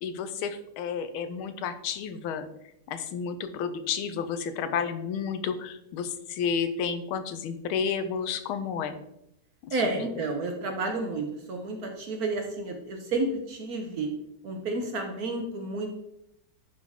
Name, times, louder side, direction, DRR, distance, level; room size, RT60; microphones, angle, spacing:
voice 1, 0.0-2.5 2.9-9.0 9.6-9.8, left 6 dB, 85° left, 10 dB, 1.5 m, -31 dB
voice 2, 9.7-14.1 14.4-15.9, right 2 dB, 60° right, 3 dB, 1.1 m, -31 dB
10.5 x 3.9 x 3.5 m, 0.80 s
omnidirectional pair, 2.2 m